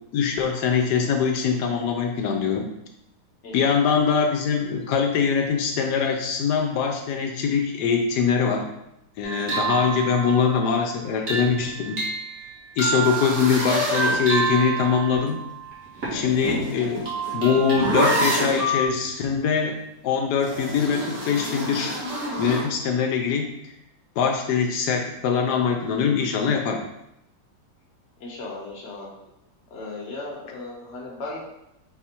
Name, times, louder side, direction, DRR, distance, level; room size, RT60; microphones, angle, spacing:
voice 1, 0.1-2.7 3.5-8.7 9.2-12.0 12.8-15.4 16.1-17.1 17.3-19.8 20.0-21.9 22.4-23.5 24.2-26.8, left 6 dB, 85° left, 3 dB, 1.2 m, -23 dB
voice 2, 3.4-3.9 9.6-10.0 16.5-16.9 28.2-29.1 29.7-31.4, left 3 dB, 50° left, -3 dB, 1.2 m, -37 dB
sound 1, 9.2-16.3 16.8-18.9, right 4 dB, 45° right, 1.6 m, -29 dB
sound 2, 13.0-14.8 16.0-18.7 20.4-22.7, equal, 65° right, 1.8 m, -27 dB
4.2 x 2.4 x 4.2 m, 0.83 s
omnidirectional pair, 1.7 m